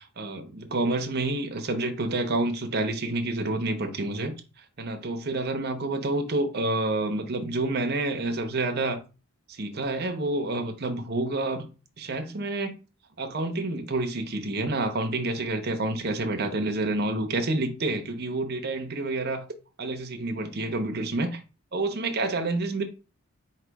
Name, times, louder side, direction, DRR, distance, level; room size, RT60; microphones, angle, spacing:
voice 1, 0.2-4.3 4.8-9.0 9.5-11.7 12.0-12.7 13.2-19.5 19.8-21.4 21.7-22.8, right 2 dB, 45° right, 0.7 m, -28 dB
3.9 x 2.7 x 4.5 m
head